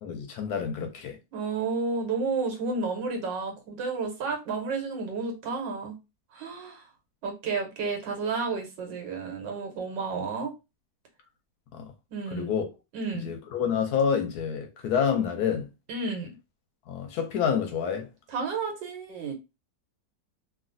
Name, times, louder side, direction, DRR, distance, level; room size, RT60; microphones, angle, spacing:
voice 1, 0.0-1.2 11.7-11.9 12.3-12.7 13.1-15.7 16.9-18.1, left 7 dB, 70° left, 1.0 m, -28 dB
voice 2, 1.3-5.9 6.3-6.8 7.2-10.5 12.1-12.5 12.9-13.3 15.9-16.3 18.3-19.3, right 4 dB, 85° right, 1.6 m, -31 dB
3.2 x 2.4 x 2.5 m
omnidirectional pair, 1.9 m